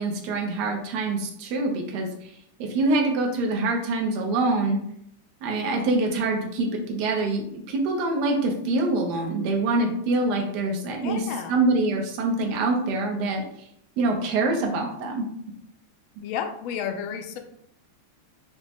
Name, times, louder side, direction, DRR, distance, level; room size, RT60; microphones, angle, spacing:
voice 1, 0.0-2.1 2.6-4.8 5.4-13.4 14.0-15.3, right 2 dB, 65° right, 2 dB, 1.1 m, -25 dB
voice 2, 11.0-11.6 16.2-17.4, left 7 dB, 75° left, 5 dB, 1.2 m, -32 dB
4.9 x 2.1 x 3.4 m, 0.70 s
omnidirectional pair, 2.4 m